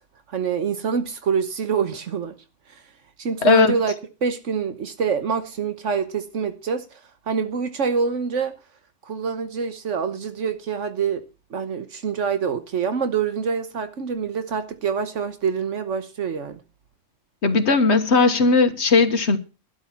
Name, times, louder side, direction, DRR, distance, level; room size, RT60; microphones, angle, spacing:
voice 1, 0.3-2.3 2.7-2.8 3.2-3.9 4.2-7.0 7.3-8.5 9.0-11.2 11.5-16.6, right 6 dB, 75° right, 1.4 m, -26 dB
voice 2, 3.4-3.7 17.4-19.4, left 4 dB, 65° left, 1.7 m, -17 dB
12.5 x 10.5 x 5.8 m
omnidirectional pair, 1.3 m